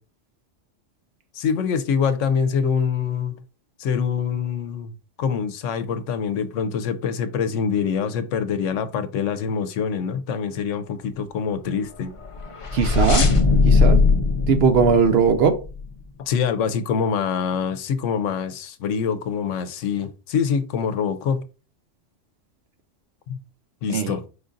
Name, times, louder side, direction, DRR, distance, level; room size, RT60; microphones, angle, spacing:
voice 1, 1.3-3.4 3.8-4.9 5.2-12.1 16.2-21.4 23.3-23.4 23.8-24.2, left 6 dB, 85° left, 0.9 m, -25 dB
sound 1, 12.2-15.9, left 4 dB, 45° left, 0.4 m, -19 dB
voice 2, 12.7-13.2 13.7-14.0 14.5-15.6 23.9-24.1, right 6 dB, 65° right, 0.8 m, -18 dB
4.9 x 2.5 x 3.8 m
omnidirectional pair, 1.3 m